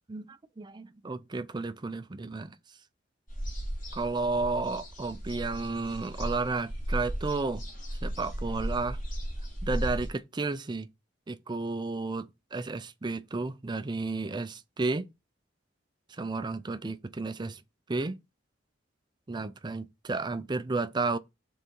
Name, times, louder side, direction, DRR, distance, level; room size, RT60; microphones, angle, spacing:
voice 1, 0.1-2.6 3.9-7.6 8.0-9.0 9.6-10.9 11.3-15.1 16.1-17.6 17.9-18.2 19.3-21.2, right 3 dB, 25° right, 0.4 m, -32 dB
sound 1, 3.3-10.1, equal, 45° left, 3.5 m, -35 dB
5.7 x 4.0 x 4.6 m
head